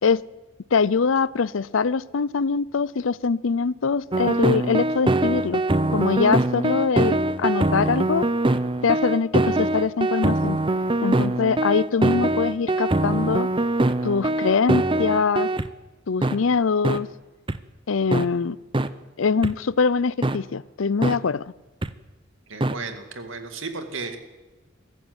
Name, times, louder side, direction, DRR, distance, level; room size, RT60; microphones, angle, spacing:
voice 1, 0.7-5.6 5.9-8.3 8.8-10.6 11.0-13.5 14.0-15.5 16.1-17.1 17.9-18.6 19.2-21.5, left 5 dB, 75° left, 20 dB, 0.6 m, -23 dB
sound 1, 4.1-15.7 16.2-16.4 16.8-17.0 17.5-17.6 18.1-18.3 18.7-18.9 19.4-19.5 20.2-20.4 21.0-21.2 21.8-21.9 22.6-22.7, right 2 dB, 25° right, 0.7 m, -23 dB
voice 2, 22.5-24.2, right 4 dB, 75° right, 6 dB, 2.2 m, -34 dB
23.0 x 14.5 x 8.1 m, 1.2 s
head